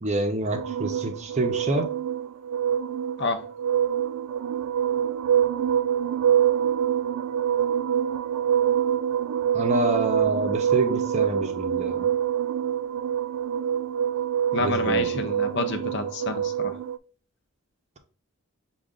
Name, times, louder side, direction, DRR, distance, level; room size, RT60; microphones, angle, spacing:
voice 1, 0.0-1.9 9.5-12.1 14.6-15.3, right 2 dB, 30° right, 0.6 m, -27 dB
sound 1, 0.5-17.0, right 9 dB, 90° right, 0.3 m, -25 dB
voice 2, 14.5-16.8, left 3 dB, 50° left, 0.6 m, -29 dB
6.2 x 2.3 x 3.6 m
head